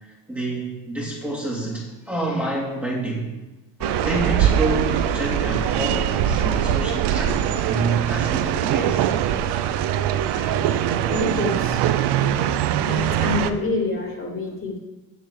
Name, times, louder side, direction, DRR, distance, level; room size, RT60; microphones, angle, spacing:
voice 1, 0.3-3.3 4.0-9.1, right 2 dB, 5° right, -4 dB, 2.6 m, -28 dB
sound 1, 3.8-7.3, equal, 60° left, 3.8 m, -39 dB
sound 2, 3.8-13.5, right 10 dB, 70° right, 0.8 m, -22 dB
voice 2, 10.3-10.8 11.1-11.8 12.1-14.8, left 3 dB, 30° left, -1 dB, 3.2 m, -28 dB
8.3 x 6.9 x 7.0 m, 1.1 s
cardioid pair, 100°, 41 cm